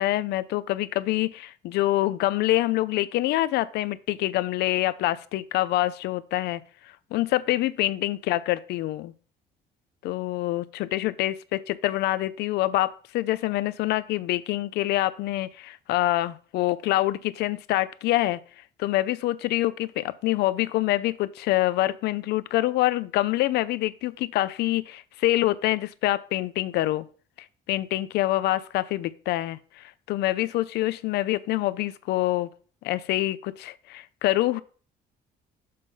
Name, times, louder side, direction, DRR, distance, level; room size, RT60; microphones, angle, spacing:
voice 1, 0.0-6.6 7.1-9.1 10.0-18.4 18.8-27.1 27.7-32.5 32.8-34.6, left 16 dB, 80° left, 16 dB, 0.5 m, -26 dB
6.7 x 4.1 x 5.3 m, 0.41 s
cardioid pair, 110°, 17 cm